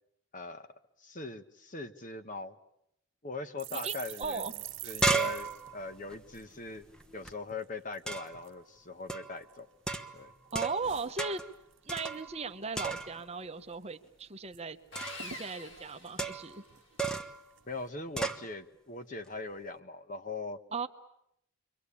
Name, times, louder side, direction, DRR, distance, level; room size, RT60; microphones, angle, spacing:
voice 1, 0.3-0.7 1.0-2.5 3.2-4.5 4.8-6.9 7.1-9.7 10.1-10.3 17.7-20.6, left 3 dB, 40° left, 9 dB, 1.3 m, -41 dB
sound 1, 3.6-7.1 7.4-7.6 7.9-8.5 9.1-9.9 10.2-11.8 12.1-12.4 12.6-13.2 13.6-13.7 13.9-14.6 14.9-15.0 15.2-17.1 17.6-17.9, right 11 dB, 60° right, 1.0 m, -47 dB
voice 2, 3.7-4.5 10.5-11.4 11.8-14.8 15.2-16.6 20.7-20.9, right 4 dB, 30° right, 8 dB, 1.0 m, -37 dB
sound 2, 4.2-4.3 4.6-7.3 8.1-8.4 9.1-9.4 9.9-10.9 11.2-11.5 11.9-12.5 12.7-13.3 14.9-15.3 16.2-16.6 17.0-17.4 18.2-18.5, right 3 dB, 5° left, 1.1 m, -34 dB
Sawing, 14.9-16.8, left 2 dB, 60° left, 5.0 m, -46 dB
29.0 x 23.5 x 8.6 m, 0.77 s
head